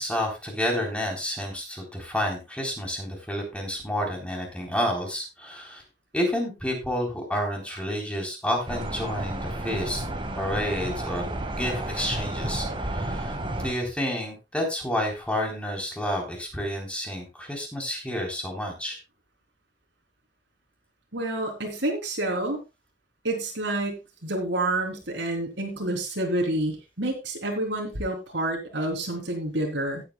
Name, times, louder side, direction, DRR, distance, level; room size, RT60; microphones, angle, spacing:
voice 1, 0.0-5.8 6.1-10.0 10.4-11.3 11.6-13.3 13.6-19.0, equal, 5° left, 0 dB, 3.9 m, -30 dB
sound 1, 8.7-13.7, right 1 dB, 30° right, 1.9 m, -31 dB
voice 2, 21.1-22.6 23.2-30.0, right 1 dB, 70° right, 2 dB, 3.6 m, -28 dB
17.5 x 9.1 x 2.3 m, 0.25 s
head